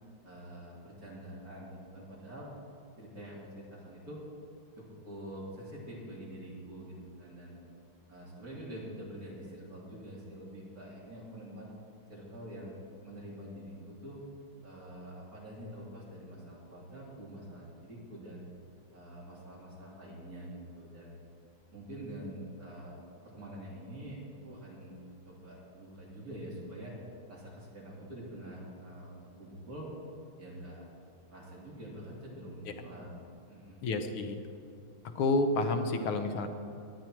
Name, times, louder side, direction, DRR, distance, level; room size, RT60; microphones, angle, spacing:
voice 1, 0.2-2.5 3.0-4.2 4.8-7.6 8.1-11.7 12.1-12.8 13.0-14.2 14.6-18.4 18.9-21.1 21.7-23.0 23.2-24.2 24.4-27.0 27.3-29.9 30.4-30.8 31.3-33.2 33.5-34.3, right 1 dB, 45° right, -5 dB, 3.6 m, -46 dB
voice 2, 33.8-34.4 35.2-36.5, left 2 dB, 85° left, 7 dB, 1.9 m, -29 dB
17.5 x 11.0 x 4.6 m, 2.6 s
omnidirectional pair, 2.3 m